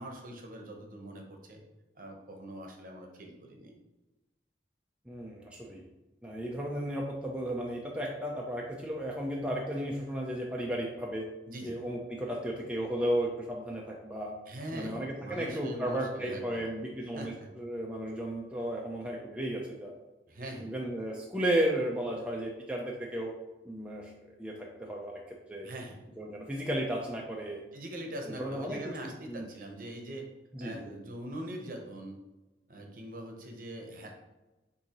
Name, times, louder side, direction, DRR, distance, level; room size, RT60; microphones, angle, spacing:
voice 1, 0.0-1.6 2.0-3.8 11.5-11.8 14.5-16.7 17.1-17.5 20.3-20.7 25.6-26.0 27.7-30.3 30.6-32.2 32.7-34.1, right 1 dB, 50° right, 2 dB, 0.8 m, -42 dB
voice 2, 5.1-5.8 6.2-11.3 11.6-14.3 14.7-19.9 20.6-23.3 23.6-24.1 24.4-25.7 26.2-27.6 28.3-28.8 29.3-29.5 30.5-30.8, right 1 dB, 5° right, -2 dB, 0.4 m, -34 dB
6.5 x 2.7 x 2.9 m, 1.1 s
head